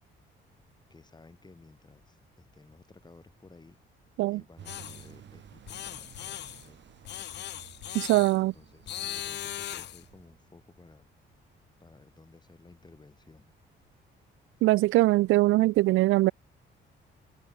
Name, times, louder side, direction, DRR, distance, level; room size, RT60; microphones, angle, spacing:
voice 1, 0.9-3.8 4.3-6.8 8.4-11.1 11.8-13.5, left 3 dB, 20° left, 5.2 m, -55 dB
sound 1, 4.6-10.4, right 10 dB, 65° right, 2.8 m, -53 dB
sound 2, 4.7-5.1 5.7-6.7 7.1-8.4 8.9-10.1, left 12 dB, 60° left, 0.6 m, -39 dB
voice 2, 7.9-8.5 14.6-16.3, right 18 dB, 90° right, 0.5 m, -22 dB
cardioid pair, 90°, 20 cm